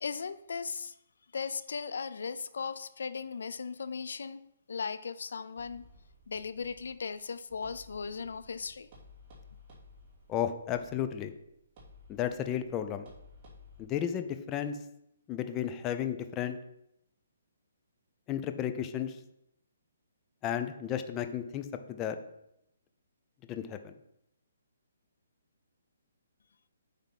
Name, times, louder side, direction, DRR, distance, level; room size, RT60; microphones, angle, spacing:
voice 1, 0.0-0.9 1.3-4.4 4.7-5.9 6.3-8.9, left 5 dB, 75° left, 14 dB, 0.4 m, -37 dB
sound 1, 5.6-13.8, left 2 dB, 30° right, 3.0 m, -56 dB
voice 2, 10.3-11.3 12.1-13.1 13.8-14.8 15.3-16.6 18.3-19.2 20.4-22.2 23.5-24.0, left 9 dB, 20° left, 9 dB, 0.5 m, -33 dB
8.9 x 3.6 x 5.8 m, 0.79 s
hypercardioid pair, 160°, 0 cm